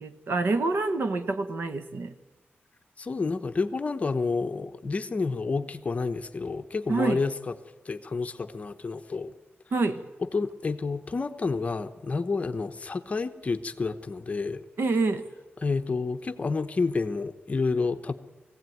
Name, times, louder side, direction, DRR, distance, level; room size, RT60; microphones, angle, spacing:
voice 1, 0.0-2.1 6.9-7.2 9.7-10.0 14.8-15.3, right 3 dB, 55° right, 9 dB, 1.3 m, -27 dB
voice 2, 3.0-7.5 7.8-9.3 10.2-14.6 15.6-18.1, left 4 dB, 35° left, 9 dB, 0.9 m, -29 dB
22.0 x 16.0 x 9.3 m, 1.2 s
wide cardioid pair, 180°, 4 cm